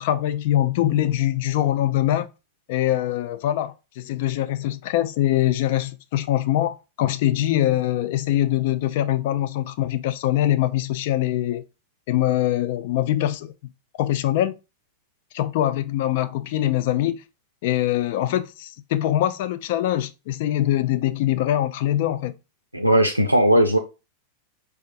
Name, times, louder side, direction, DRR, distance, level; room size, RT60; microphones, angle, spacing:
voice 1, 0.0-2.3 2.7-11.6 12.1-13.5 14.0-14.5 15.3-17.2 17.6-22.3, left 13 dB, 50° left, 0.3 m, -23 dB
voice 2, 22.7-23.8, right 1 dB, 90° right, 0.4 m, -17 dB
4.4 x 2.3 x 2.5 m
figure-of-eight pair, 90°, 0 cm